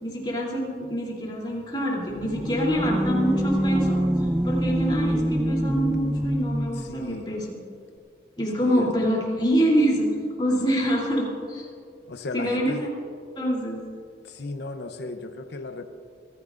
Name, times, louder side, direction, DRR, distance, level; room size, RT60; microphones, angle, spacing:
voice 1, 0.0-4.0 4.4-7.6 8.4-10.1 10.4-11.7 12.3-12.9 13.4-13.8, equal, 25° left, -3 dB, 3.0 m, -26 dB
sound 1, 2.1-6.9, equal, 5° right, 0.3 m, -25 dB
voice 2, 6.8-7.3 8.6-8.9 12.1-12.9 14.2-15.8, left 2 dB, 70° left, 7 dB, 0.7 m, -35 dB
24.5 x 14.5 x 2.5 m, 2.3 s
head